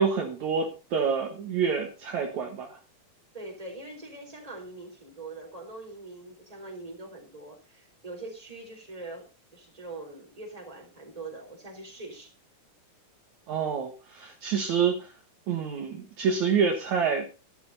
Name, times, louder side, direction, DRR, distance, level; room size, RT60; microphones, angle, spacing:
voice 1, 0.0-2.8 13.5-15.1 15.5-17.3, right 6 dB, 60° right, 3 dB, 2.6 m, -27 dB
voice 2, 3.3-9.3 9.5-12.3, right 2 dB, 10° right, 2 dB, 4.0 m, -42 dB
12.5 x 12.0 x 4.1 m, 0.31 s
omnidirectional pair, 4.0 m